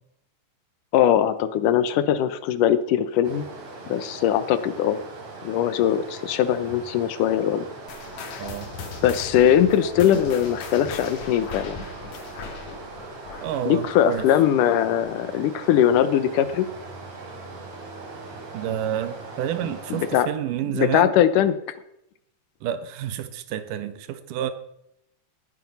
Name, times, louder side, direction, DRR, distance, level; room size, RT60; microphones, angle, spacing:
voice 1, 0.9-3.5 3.9-5.0 5.4-7.7 8.3-8.5 9.0-11.8 13.7-16.7 19.9-20.3 20.7-21.5, left 10 dB, 90° left, 2.4 m, -21 dB
Stream, 3.2-20.2, right 3 dB, 55° right, 4.0 m, -40 dB
sound 1, 7.9-14.7 15.0-15.3 15.9-16.0 16.8-16.9, left 5 dB, 65° left, 3.0 m, -39 dB
voice 2, 8.4-8.7 13.4-14.3 18.5-21.1 22.6-24.5, right 10 dB, 85° right, 2.6 m, -29 dB
19.0 x 9.0 x 5.4 m
omnidirectional pair, 3.7 m